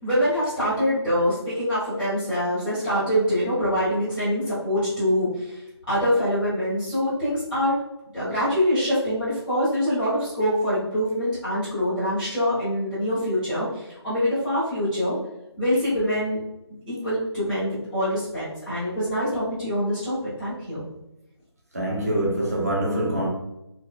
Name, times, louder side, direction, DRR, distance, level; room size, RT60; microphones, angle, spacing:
voice 1, 0.0-5.6 5.9-7.8 8.1-15.1 15.6-16.4 16.9-20.8, equal, ahead, 0.7 m, -24 dB
voice 2, 21.7-23.3, right 1 dB, 35° right, 0.8 m, -24 dB
4.2 x 2.1 x 2.3 m
figure-of-eight pair, 180°, 15 cm